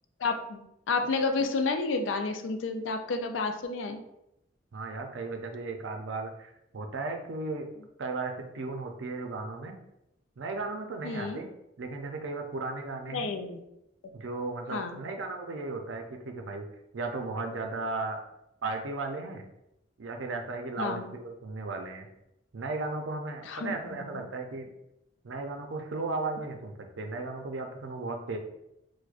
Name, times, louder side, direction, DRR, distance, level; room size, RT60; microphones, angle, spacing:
voice 1, 0.2-4.0 11.0-11.4 13.1-13.6 14.7-15.0 20.8-21.1 23.5-23.7, left 3 dB, 90° left, 7 dB, 0.4 m, -30 dB
voice 2, 4.7-7.7 8.0-9.8 10.4-11.5 11.8-13.3 14.1-16.7 16.9-18.2 18.6-19.5 20.0-22.1 22.5-24.7 25.2-28.4, right 3 dB, 90° right, 4 dB, 0.5 m, -35 dB
4.7 x 2.1 x 2.4 m, 0.84 s
head